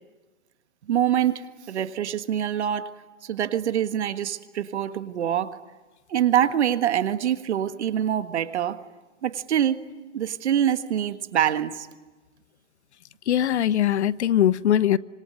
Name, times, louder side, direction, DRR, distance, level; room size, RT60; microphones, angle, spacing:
voice 1, 0.9-2.9 3.2-5.6 6.1-8.8 9.2-9.8 10.1-11.9, right 10 dB, 65° right, 11 dB, 1.7 m, -25 dB
voice 2, 13.3-15.0, left 11 dB, 65° left, 20 dB, 0.9 m, -21 dB
26.0 x 23.0 x 9.6 m, 1.2 s
hypercardioid pair, 135°, 37 cm